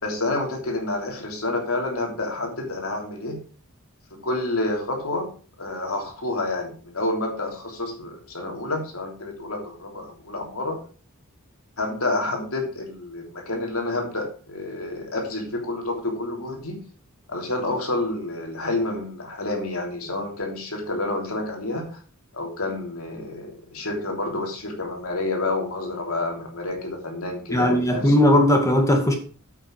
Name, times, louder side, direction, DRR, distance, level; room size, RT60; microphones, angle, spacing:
voice 1, 0.0-3.4 4.1-5.3 5.6-10.8 11.8-16.8 17.3-21.9 22.3-28.1, left 2 dB, 70° left, 3.3 m, -29 dB
voice 2, 27.5-29.2, left 1 dB, 15° left, 2.0 m, -18 dB
8.4 x 8.2 x 4.7 m
head